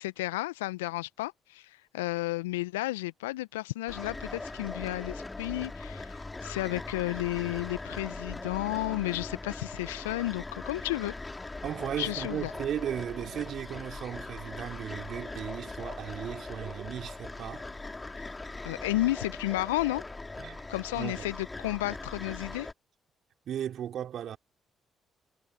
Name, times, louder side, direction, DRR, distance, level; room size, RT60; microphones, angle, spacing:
voice 1, 0.0-11.1 12.0-12.5 18.6-20.0 20.7-22.7, left 18 dB, 80° left, 1.0 m, -32 dB
sound 1, 3.9-22.7, left 2 dB, 20° left, 3.6 m, -40 dB
voice 2, 11.6-17.7 20.4-20.7 21.0-21.3 23.5-24.4, right 10 dB, 60° right, 3.6 m, -36 dB
figure-of-eight pair, 45°, 0 cm